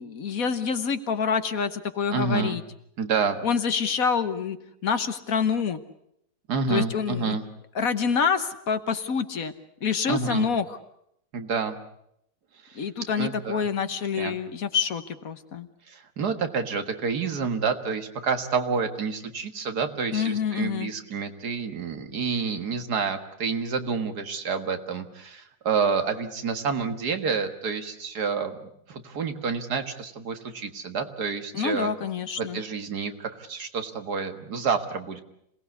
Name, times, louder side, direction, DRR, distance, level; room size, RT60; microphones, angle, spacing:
voice 1, 0.0-2.6 3.4-4.6 4.8-5.8 6.7-7.4 7.7-9.5 9.8-10.8 12.7-15.7 20.1-20.9 31.5-32.6, left 6 dB, 65° left, 10 dB, 1.6 m, -27 dB
voice 2, 2.1-2.6 3.0-3.4 6.5-7.4 10.1-10.5 11.3-11.8 12.6-12.8 13.2-13.7 14.2-14.4 15.9-31.9 32.4-35.2, right 5 dB, 85° right, 7 dB, 2.2 m, -29 dB
26.5 x 18.5 x 8.3 m, 0.76 s
omnidirectional pair, 1.7 m